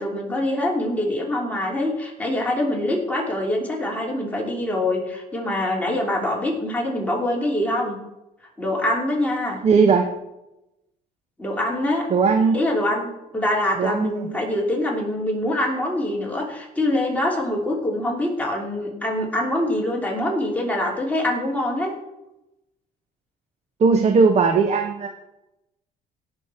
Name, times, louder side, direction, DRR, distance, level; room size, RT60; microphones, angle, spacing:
voice 1, 0.0-8.0 8.6-9.6 11.4-12.1 12.5-21.9, left 1 dB, 10° left, -2 dB, 3.0 m, -24 dB
voice 2, 9.6-10.1 12.1-12.6 13.8-14.3 23.8-25.1, right 5 dB, 40° right, 6 dB, 1.0 m, -18 dB
17.5 x 6.6 x 4.4 m, 0.92 s
cardioid pair, 110°, 17 cm